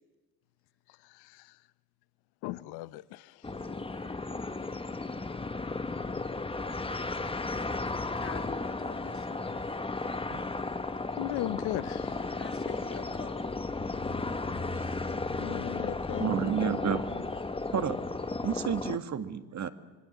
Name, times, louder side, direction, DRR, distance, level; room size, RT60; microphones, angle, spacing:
voice 1, 0.9-1.6 2.4-3.5 11.1-12.4 15.4-16.3, left 17 dB, 70° left, 17 dB, 0.8 m, -37 dB
sound 1, 3.4-19.0, left 3 dB, 15° left, 1.1 m, -34 dB
voice 2, 3.5-5.0 8.2-9.8 12.4-14.3 14.7-15.1, left 6 dB, 35° left, 7 dB, 2.3 m, -47 dB
voice 3, 16.2-17.1 17.7-18.0 18.4-19.7, right 7 dB, 40° right, 9 dB, 1.8 m, -30 dB
26.0 x 23.0 x 7.3 m, 1.3 s
hypercardioid pair, 65°, 41 cm